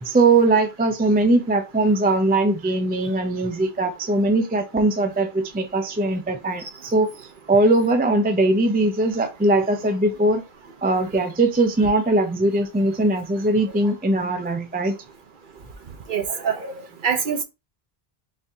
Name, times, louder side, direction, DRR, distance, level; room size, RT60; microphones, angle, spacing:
voice 1, 0.0-10.4 10.8-15.0, right 2 dB, 15° right, 0.3 m, -20 dB
voice 2, 16.1-16.6 17.0-17.4, right 7 dB, 55° right, 0.9 m, -23 dB
4.2 x 2.6 x 3.5 m
omnidirectional pair, 1.0 m